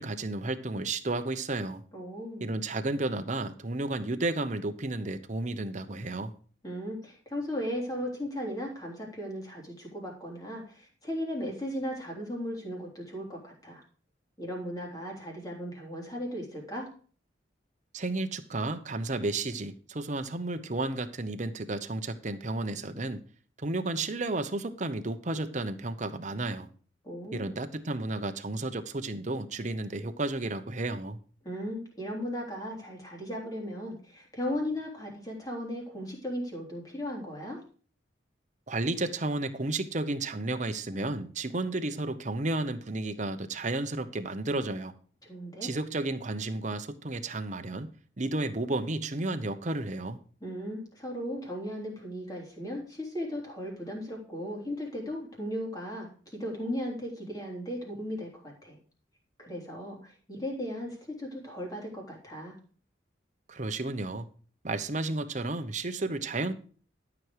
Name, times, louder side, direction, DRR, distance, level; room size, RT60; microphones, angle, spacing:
voice 1, 0.0-1.8 2.4-6.3 17.9-23.2 23.6-26.7 27.3-31.2 38.7-44.9 45.6-50.2 63.5-64.3 64.6-66.5, right 2 dB, 40° right, 0.9 m, -32 dB
voice 2, 1.9-2.5 6.6-13.8 14.4-16.9 27.0-27.6 31.4-37.6 45.2-45.7 50.4-58.8 59.4-62.6, equal, 20° left, 3.3 m, -36 dB
12.5 x 6.1 x 4.9 m
head